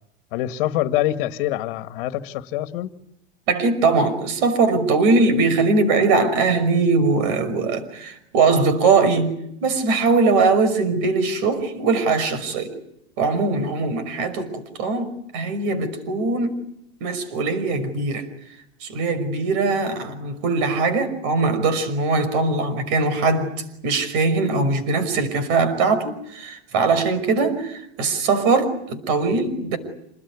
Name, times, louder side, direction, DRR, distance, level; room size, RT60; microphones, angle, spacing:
voice 1, 0.3-2.9, left 14 dB, 50° left, 1.9 m, -25 dB
voice 2, 3.5-12.7 13.2-16.6 17.0-18.3 18.8-23.5 23.8-29.8, right 4 dB, 50° right, 5.7 m, -21 dB
27.5 x 20.5 x 9.7 m
supercardioid pair, 155°, 32 cm